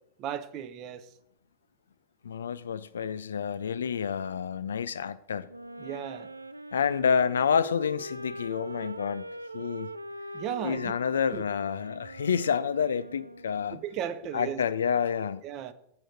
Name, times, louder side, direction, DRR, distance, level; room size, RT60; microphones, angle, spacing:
voice 1, 0.2-1.1 5.8-6.3 10.3-10.9 11.3-11.4 13.8-14.6 15.4-15.7, right 9 dB, 40° right, 0.6 m, -35 dB
voice 2, 2.2-5.5 6.7-9.3 9.5-9.9 10.6-13.8 14.3-15.4, left 7 dB, 70° left, 0.3 m, -28 dB
Wind instrument woodwind instrument, 5.5-13.8, right 1 dB, 85° right, 0.3 m, -42 dB
7.7 x 4.5 x 6.3 m
figure-of-eight pair, 90°, 0 cm